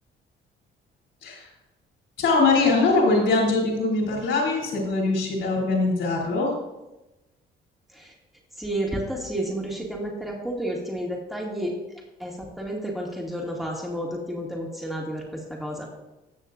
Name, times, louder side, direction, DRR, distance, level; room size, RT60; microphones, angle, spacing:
voice 1, 2.2-6.5, left 3 dB, 70° left, -1 dB, 3.6 m, -22 dB
voice 2, 8.6-11.8 12.2-16.0, right 1 dB, ahead, -2 dB, 2.3 m, -31 dB
18.0 x 6.4 x 2.6 m, 1.0 s
cardioid pair, 90°, 20 cm